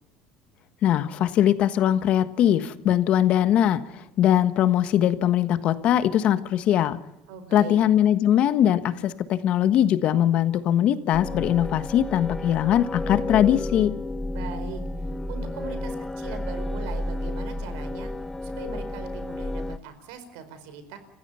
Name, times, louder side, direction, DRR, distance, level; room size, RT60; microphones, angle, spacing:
voice 1, 0.8-3.8 4.2-7.0 7.5-13.9, left 11 dB, 50° left, 13 dB, 1.4 m, -21 dB
voice 2, 7.3-7.8 14.3-18.1 18.4-21.0, right 6 dB, 80° right, 10 dB, 4.6 m, -40 dB
sound 1, 11.1-19.8, left 1 dB, 10° left, 0.8 m, -31 dB
30.0 x 15.5 x 5.7 m, 0.88 s
cardioid pair, 135°, 3 cm